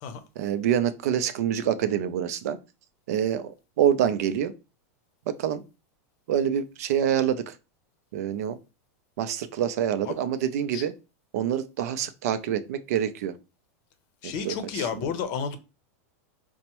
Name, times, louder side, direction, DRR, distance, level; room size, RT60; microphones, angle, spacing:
voice 1, 0.4-2.6 3.1-3.5 3.8-4.5 5.4-5.6 6.3-7.5 8.1-8.6 9.2-10.9 11.3-13.3 14.2-14.9, right 9 dB, 70° right, 0.4 m, -26 dB
voice 2, 14.2-15.6, left 7 dB, 50° left, 0.6 m, -31 dB
4.3 x 2.1 x 2.9 m
supercardioid pair, 135°, 9 cm